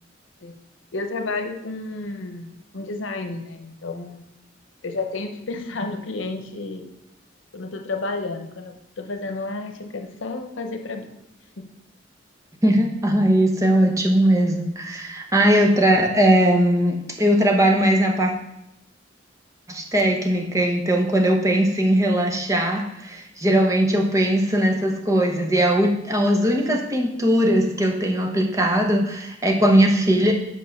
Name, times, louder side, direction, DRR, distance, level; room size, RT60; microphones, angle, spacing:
voice 1, 0.9-4.2 4.8-6.9 7.5-11.1 11.6-11.7, left 3 dB, 85° left, 6 dB, 0.8 m, -31 dB
voice 2, 12.6-18.3 19.7-30.3, right 1 dB, 15° right, 2 dB, 0.9 m, -19 dB
5.5 x 5.4 x 5.7 m, 0.85 s
head